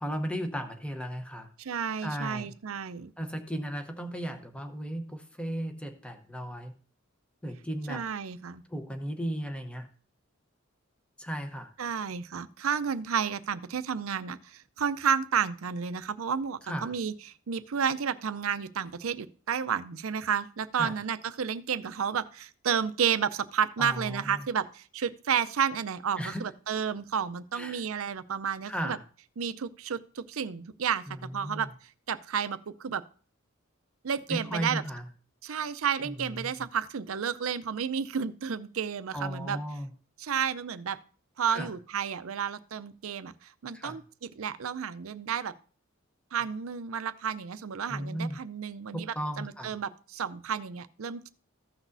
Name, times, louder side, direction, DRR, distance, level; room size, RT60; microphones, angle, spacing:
voice 1, 0.0-1.5 2.0-2.5 3.2-6.7 7.4-8.0 8.7-9.9 11.2-11.7 16.7-16.9 20.7-20.9 23.8-24.4 26.2-26.5 27.5-27.8 28.7-29.0 31.1-31.6 34.3-35.0 36.0-36.5 39.1-39.9 41.5-41.7 43.7-44.0 47.9-48.4 48.9-49.7, equal, 5° left, 6 dB, 0.9 m, -35 dB
voice 2, 1.6-3.1 7.9-8.6 11.8-29.0 29.4-33.0 34.0-34.8 35.4-39.6 40.2-41.0 41.4-45.5 46.3-51.3, right 7 dB, 85° right, 13 dB, 0.5 m, -31 dB
15.0 x 6.1 x 2.6 m, 0.40 s
head